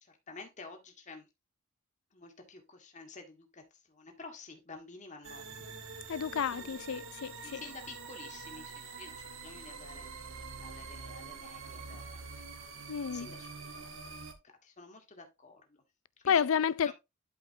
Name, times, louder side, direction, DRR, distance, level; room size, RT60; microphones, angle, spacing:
voice 1, 0.0-1.3 2.1-5.7 6.1-6.8 7.4-10.1 10.6-12.3 12.8-14.0 14.6-15.8 16.2-16.4 16.8-16.9, left 3 dB, 35° left, 1.8 m, -51 dB
sound 1, 5.2-14.3, right 4 dB, 65° right, 1.4 m, -46 dB
voice 2, 6.1-7.6 12.9-13.3 16.2-16.9, left 7 dB, 80° left, 0.4 m, -30 dB
11.5 x 5.1 x 2.7 m
head